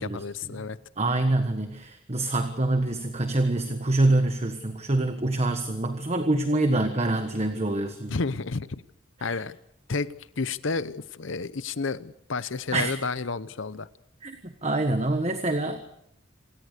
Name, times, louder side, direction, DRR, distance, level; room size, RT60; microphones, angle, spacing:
voice 1, 0.0-0.8 8.1-8.8 9.2-9.6 9.9-13.9, left 4 dB, 70° left, 15 dB, 0.8 m, -31 dB
voice 2, 1.0-8.1 9.2-9.4 12.7-12.9 14.2-15.8, right 2 dB, 30° right, 7 dB, 1.4 m, -26 dB
27.0 x 17.5 x 6.7 m, 0.77 s
head